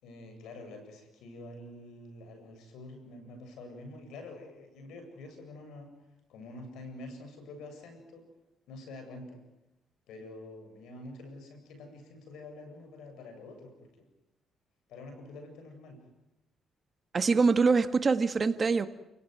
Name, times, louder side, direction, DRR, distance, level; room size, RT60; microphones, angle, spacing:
voice 1, 0.0-5.9 6.3-8.3 8.7-9.4 10.1-14.1 14.9-16.0, left 2 dB, 85° left, 6 dB, 8.0 m, -47 dB
voice 2, 17.1-18.9, right 4 dB, 35° right, 9 dB, 1.8 m, -24 dB
29.5 x 17.5 x 9.5 m, 0.93 s
cardioid pair, 90°, 0 cm